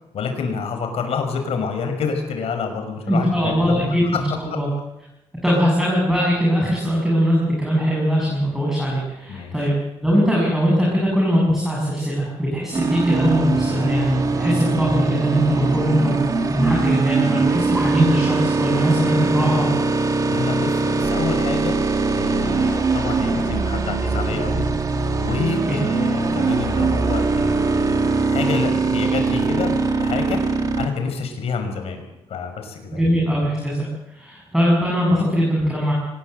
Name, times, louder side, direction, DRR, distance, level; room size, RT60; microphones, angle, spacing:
voice 1, 0.1-3.8 4.0-4.2 4.5-4.6 9.3-9.5 20.3-24.7 25.1-32.0 32.3-33.0, left 5 dB, 70° left, 5 dB, 5.7 m, -28 dB
voice 2, 3.1-4.7 5.4-16.2 16.5-19.7 25.7-25.8 32.9-35.9, equal, 5° right, -4 dB, 6.9 m, -21 dB
sound 1, 12.7-30.9, right 3 dB, 35° right, 2.3 m, -21 dB
24.0 x 20.0 x 8.0 m, 0.92 s
wide cardioid pair, 160°, 11 cm